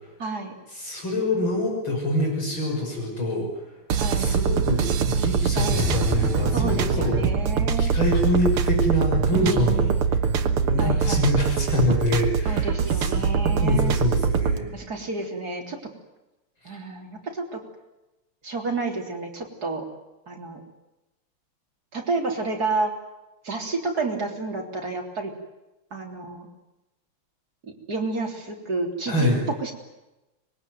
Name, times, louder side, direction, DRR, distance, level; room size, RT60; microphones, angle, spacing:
voice 1, 0.2-0.5 4.0-4.4 5.5-5.9 6.5-8.0 9.3-10.2 10.8-11.3 12.4-14.0 14.7-15.8 16.6-17.6 18.4-19.9 20.3-20.6 21.9-22.9 23.4-25.3 25.9-26.5 27.9-29.7, right 3 dB, 45° right, 1 dB, 4.1 m, -30 dB
voice 2, 0.8-3.5 4.2-7.2 7.8-10.0 10.6-14.7 29.1-29.4, left 1 dB, 60° left, 0 dB, 7.1 m, -25 dB
sound 1, 3.9-14.6, right 6 dB, 85° right, 2.3 m, -23 dB
sound 2, 5.7-11.8, left 2 dB, ahead, 6.5 m, -32 dB
25.0 x 22.0 x 9.5 m, 1.0 s
omnidirectional pair, 2.4 m